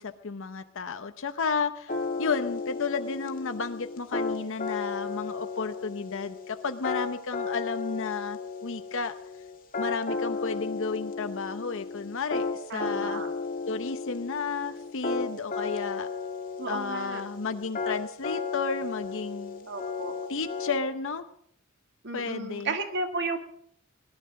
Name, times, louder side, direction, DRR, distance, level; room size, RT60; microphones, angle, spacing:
voice 1, 0.0-9.1 9.8-13.2 13.7-16.1 16.7-19.7 20.3-21.2 22.1-22.7, left 4 dB, 65° left, 9 dB, 0.8 m, -32 dB
sound 1, 1.9-20.8, left 4 dB, 40° left, 1.9 m, -34 dB
voice 2, 12.7-13.3 16.6-17.2 19.7-20.1 22.0-23.4, right 3 dB, 55° right, 6 dB, 2.1 m, -33 dB
19.5 x 11.5 x 6.4 m, 0.69 s
head